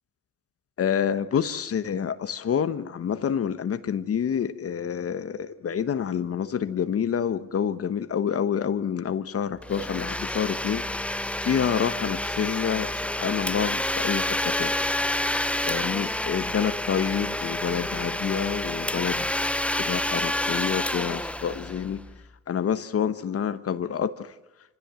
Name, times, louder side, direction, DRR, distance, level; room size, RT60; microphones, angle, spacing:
voice 1, 0.8-10.9 11.4-14.7 15.6-19.3 19.8-22.0 22.5-24.3, left 8 dB, 50° left, 12 dB, 1.1 m, -28 dB
Domestic sounds home sounds, 9.6-22.2, left 1 dB, 5° left, 0.7 m, -29 dB
26.5 x 16.0 x 7.6 m, 1.0 s
cardioid pair, 90°, 30 cm